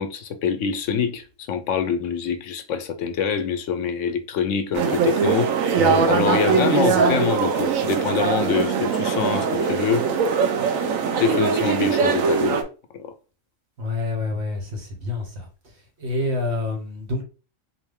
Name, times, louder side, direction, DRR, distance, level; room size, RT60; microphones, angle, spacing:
voice 1, 0.0-5.5 6.1-10.1 11.2-12.6 12.9-13.1, left 6 dB, 70° left, 0.9 m, -25 dB
sound 1, 4.7-12.6, right 5 dB, 90° right, 1.1 m, -21 dB
voice 2, 13.8-15.5 16.0-17.2, left 2 dB, 55° right, 1.4 m, -27 dB
3.9 x 2.6 x 3.5 m
omnidirectional pair, 1.4 m